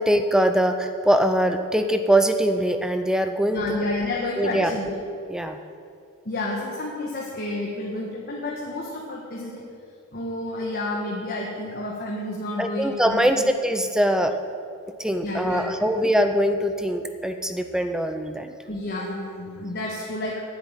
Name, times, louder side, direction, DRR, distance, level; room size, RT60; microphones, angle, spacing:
voice 1, 0.0-3.8 4.4-4.7 5.3-5.6 12.6-14.3 15.0-18.5, right 1 dB, 5° right, 7 dB, 0.5 m, -22 dB
voice 2, 3.5-5.0 6.2-9.6 10.1-13.5 15.2-15.9 18.7-20.4, left 2 dB, 45° left, -3 dB, 1.4 m, -30 dB
10.0 x 7.9 x 8.9 m, 2.3 s
head